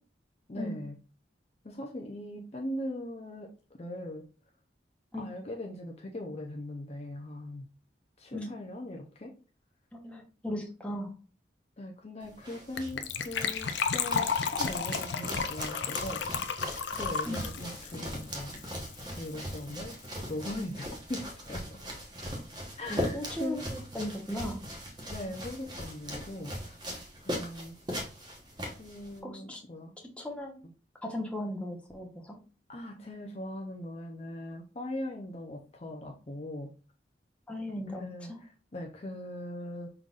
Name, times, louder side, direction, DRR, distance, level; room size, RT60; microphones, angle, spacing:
voice 1, 0.5-1.0 1.6-3.5 3.8-4.3 5.2-7.7 8.2-9.4 11.8-16.5 16.9-18.6 19.1-20.0 20.3-21.8 22.8-23.6 25.1-26.8 27.2-27.8 28.6-29.9 32.7-36.7 37.8-39.9, left 1 dB, 35° left, 1 dB, 0.6 m, -40 dB
voice 2, 9.9-11.1 17.2-17.4 22.9-24.6 29.2-29.6 30.2-30.5 31.0-32.4 37.5-38.4, left 1 dB, 5° left, 0 dB, 0.9 m, -37 dB
sound 1, 12.2-29.2, equal, 25° right, 1.1 m, -40 dB
Gurgling / Trickle dribble / Fill (with liquid), 12.8-19.0 19.3-19.4 19.5-19.8 20.1-20.2, left 6 dB, 80° left, 0.5 m, -33 dB
5.6 x 3.8 x 2.4 m, 0.36 s
head